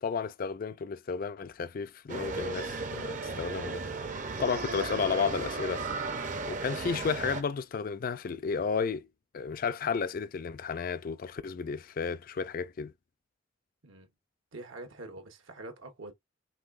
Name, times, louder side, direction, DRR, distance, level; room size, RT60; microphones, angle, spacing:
voice 1, 0.0-4.1 4.4-5.8 6.5-9.1 9.3-12.9, left 5 dB, 45° left, 0.4 m, -33 dB
sound 1, 2.1-7.4, right 3 dB, 40° right, 0.6 m, -35 dB
voice 2, 14.5-16.1, right 2 dB, 75° right, 1.3 m, -45 dB
5.4 x 3.4 x 2.4 m
head